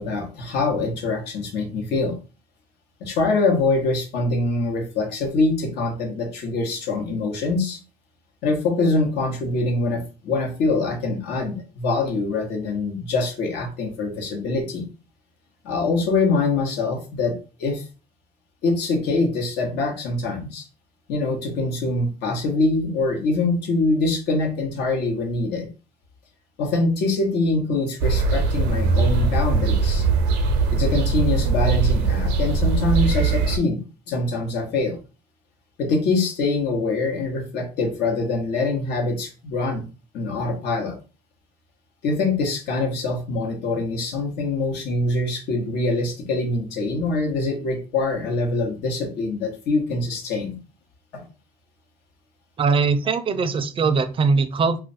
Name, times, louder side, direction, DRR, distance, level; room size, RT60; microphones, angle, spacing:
voice 1, 0.0-2.1 3.0-7.8 8.4-14.9 15.6-17.8 18.6-20.6 21.1-25.7 26.6-30.1 30.7-33.8 34.1-35.0 35.8-39.9 40.1-41.0 42.0-50.5, left 3 dB, 85° left, 2 dB, 1.0 m, -24 dB
sound 1, 28.0-33.6, right 4 dB, 90° right, 0.5 m, -21 dB
voice 2, 52.6-54.8, right 4 dB, 30° right, 11 dB, 0.4 m, -21 dB
2.4 x 2.2 x 3.9 m, 0.34 s
cardioid pair, 110°, 17 cm